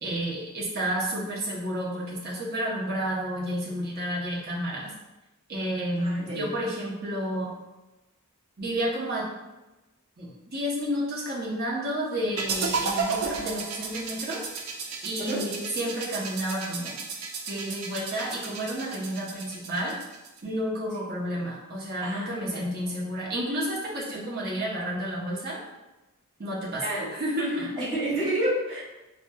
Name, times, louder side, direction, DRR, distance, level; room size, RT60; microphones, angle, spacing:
voice 1, 0.0-4.9 5.5-7.5 8.6-9.3 10.2-14.4 15.0-17.0 17.5-19.9 20.4-25.6 26.4-27.7, equal, 45° right, -5 dB, 0.8 m, -31 dB
voice 2, 6.0-6.5 15.2-15.4 22.0-22.6 26.8-27.1 27.4-28.8, right 1 dB, 25° right, -11 dB, 1.4 m, -30 dB
sound 1, 12.4-20.4, right 4 dB, 75° right, 0.4 m, -33 dB
4.2 x 2.2 x 2.2 m, 1.0 s
head